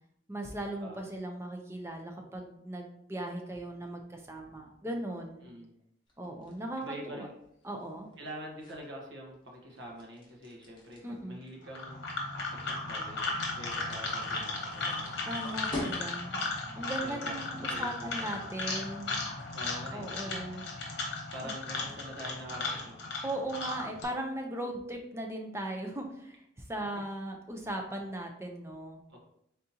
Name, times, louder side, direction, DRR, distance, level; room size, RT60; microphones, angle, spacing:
voice 1, 0.3-5.5 6.2-7.3 7.6-8.1 11.0-11.4 15.3-19.1 19.9-20.6 21.4-21.5 23.2-29.0, right 1 dB, 15° right, 2 dB, 0.5 m, -38 dB
voice 2, 5.4-5.7 6.8-7.3 8.2-12.0 12.5-15.5 17.0-18.4 19.5-20.3 20.7-23.0 29.1-29.2, equal, 60° right, -2 dB, 1.1 m, -46 dB
sound 1, 6.1-16.5, left 1 dB, 25° left, 1.0 m, -46 dB
Liquid noise, 11.7-24.0, left 3 dB, 55° left, 1.0 m, -36 dB
4.1 x 3.7 x 2.7 m, 0.75 s
head